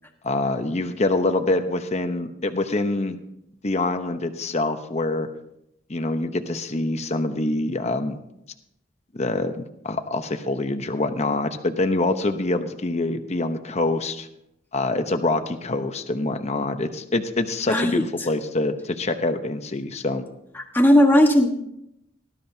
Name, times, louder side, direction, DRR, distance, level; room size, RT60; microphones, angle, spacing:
voice 1, 0.2-3.2 3.6-5.3 5.9-8.2 9.1-14.3 14.7-20.2, left 2 dB, 35° left, 7 dB, 0.8 m, -25 dB
voice 2, 17.7-18.0 20.5-21.5, left 1 dB, 10° left, 2 dB, 1.4 m, -17 dB
18.5 x 12.5 x 2.8 m, 0.80 s
head